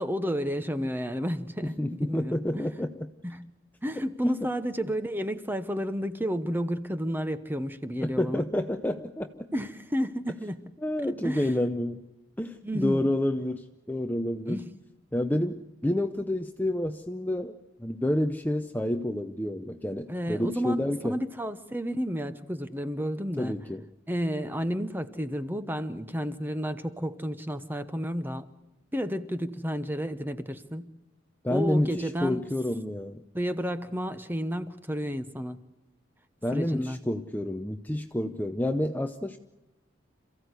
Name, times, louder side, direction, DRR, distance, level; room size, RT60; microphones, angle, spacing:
voice 1, 0.0-2.6 3.2-3.4 3.8-8.5 9.5-10.7 11.2-11.5 12.6-13.0 14.5-14.7 20.1-23.5 24.1-28.5 28.9-30.9 31.5-32.4 33.3-35.6 36.5-37.0, equal, 10° right, 10 dB, 1.0 m, -31 dB
voice 2, 1.6-3.1 4.2-4.4 8.0-9.5 10.8-12.0 12.4-14.6 15.1-21.2 23.4-23.8 31.4-33.2 36.4-39.4, left 1 dB, 10° left, 7 dB, 0.7 m, -29 dB
27.5 x 15.5 x 8.2 m, 1.0 s
head